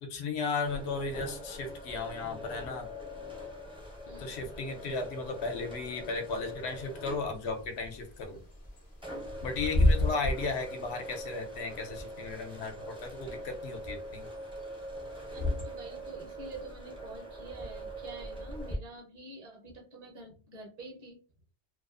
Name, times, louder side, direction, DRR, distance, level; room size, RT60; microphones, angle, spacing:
voice 1, 0.0-2.9 4.2-8.4 9.4-14.3, left 4 dB, 75° left, 4 dB, 0.8 m, -35 dB
sound 1, 0.6-18.8, equal, 5° right, 0.5 m, -43 dB
voice 2, 4.1-4.4 10.3-10.4 15.3-21.2, right 2 dB, 40° right, 0 dB, 0.8 m, -47 dB
Bird / Wind, 7.3-16.0, left 1 dB, 40° left, 0.6 m, -32 dB
2.4 x 2.3 x 2.4 m, 0.36 s
omnidirectional pair, 1.1 m